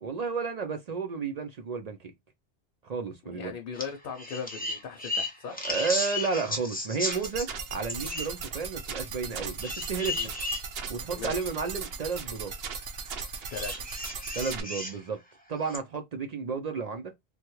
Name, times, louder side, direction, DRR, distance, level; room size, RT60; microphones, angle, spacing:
voice 1, 0.0-2.1 2.8-3.5 5.6-10.2 10.9-12.5 14.3-15.2 15.5-17.1, right 5 dB, 50° right, 0.5 m, -32 dB
voice 2, 3.2-5.7 10.1-10.3 11.1-11.5 13.5-13.9, left 6 dB, 65° left, 0.7 m, -39 dB
sound 1, 3.7-3.9 4.2-7.5 7.9-8.3 9.6-10.6 11.4-11.5 13.5-15.0 15.7-15.8, left 2 dB, 10° left, 0.6 m, -34 dB
sound 2, 7.1-14.6, right 5 dB, 75° right, 0.8 m, -38 dB
3.2 x 2.2 x 3.0 m
omnidirectional pair, 1.0 m